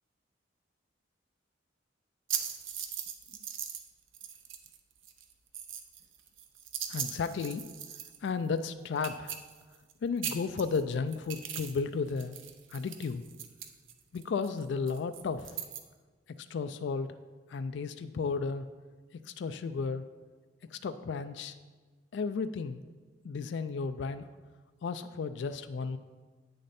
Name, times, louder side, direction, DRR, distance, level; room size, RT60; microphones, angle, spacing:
sound 1, 2.3-3.9 4.1-4.8 5.0-8.3 8.6-8.7 9.0-9.9 10.2-11.8 12.1-15.8, right 9 dB, 90° right, 0.7 m, -39 dB
voice 1, 6.9-7.6 8.2-9.4 10.0-12.4 12.7-13.2 14.1-15.6 16.4-17.2 17.5-18.7 19.1-20.0 20.7-21.5 22.1-22.8 23.2-24.3 24.8-26.0, left 5 dB, 65° left, 10 dB, 0.3 m, -33 dB
8.7 x 6.6 x 4.2 m, 1.4 s
head